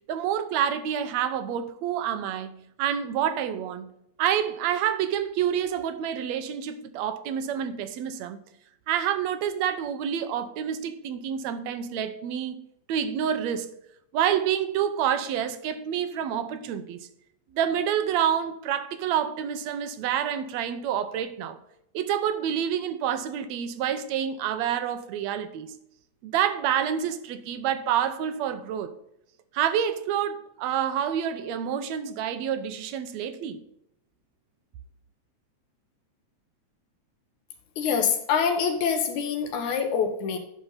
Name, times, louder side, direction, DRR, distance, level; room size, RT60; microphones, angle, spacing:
voice 1, 0.1-3.9 4.2-8.4 8.9-12.6 12.9-13.7 14.1-17.0 17.5-21.6 21.9-25.7 26.2-28.9 29.5-33.6, right 9 dB, 75° right, 1.9 m, -28 dB
voice 2, 37.8-40.4, left 6 dB, 85° left, 2.6 m, -25 dB
10.5 x 6.1 x 4.0 m
omnidirectional pair, 3.3 m